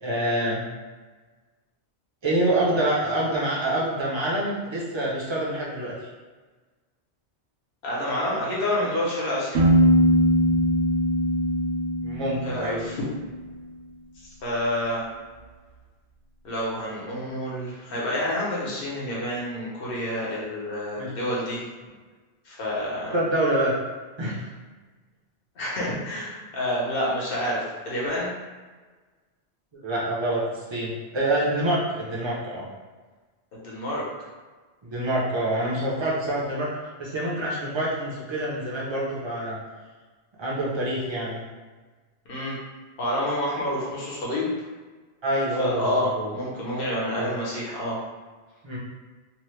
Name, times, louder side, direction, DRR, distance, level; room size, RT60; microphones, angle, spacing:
voice 1, 0.0-0.7 2.2-5.9 12.0-12.8 21.0-21.1 23.1-23.7 24.2-24.5 29.8-32.7 34.8-36.7 37.0-39.6 40.4-41.4 45.2-46.3 47.2-47.3 48.6-48.8, right 1 dB, 30° right, -6 dB, 0.6 m, -26 dB
voice 2, 7.8-9.6 12.4-13.1 14.4-15.0 16.4-21.6 22.4-23.2 25.6-28.3 33.5-34.1 35.5-35.7 42.3-42.5 43.0-44.5 45.6-48.0, left 1 dB, 55° left, -6 dB, 1.1 m, -28 dB
Piano, 9.5-13.2, equal, 85° right, 1.0 m, -21 dB
2.9 x 2.2 x 3.2 m, 1.4 s
omnidirectional pair, 1.1 m